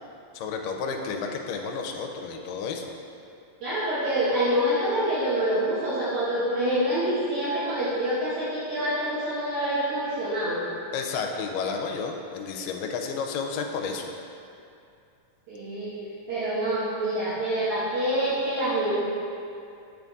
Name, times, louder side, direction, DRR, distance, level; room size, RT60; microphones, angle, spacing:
voice 1, 0.3-2.9 10.9-14.1, left 5 dB, 85° left, 2 dB, 2.2 m, -31 dB
voice 2, 3.6-10.6 15.5-15.9 16.3-19.0, right 1 dB, 65° right, -12 dB, 2.3 m, -26 dB
7.8 x 3.5 x 4.0 m, 2.5 s
omnidirectional pair, 3.8 m